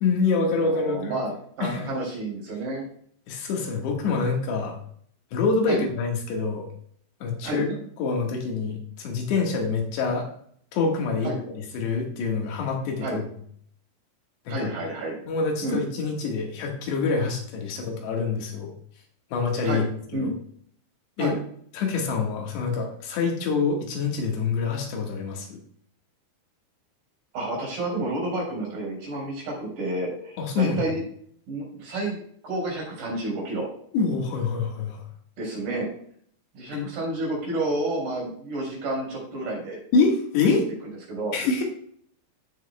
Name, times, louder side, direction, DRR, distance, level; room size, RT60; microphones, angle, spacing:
voice 1, 0.0-1.2 1.6-1.9 3.3-4.8 5.3-6.7 7.2-10.3 10.7-13.2 14.5-14.7 15.3-18.7 19.3-20.3 21.2-21.4 21.7-25.6 30.4-30.8 33.9-35.1 36.7-36.9 39.9-40.7 41.3-41.6, left 4 dB, 85° left, 1 dB, 3.7 m, -26 dB
voice 2, 0.6-2.9 5.7-5.8 7.4-7.6 11.2-11.4 13.0-13.2 14.5-15.2 15.6-15.8 19.6-19.8 20.1-20.3 21.2-21.4 27.3-31.0 31.5-32.2 32.4-33.7 35.4-35.9 36.5-39.8 41.1-41.3, right 2 dB, 65° right, -2 dB, 5.8 m, -30 dB
15.0 x 6.3 x 2.2 m, 0.62 s
omnidirectional pair, 4.7 m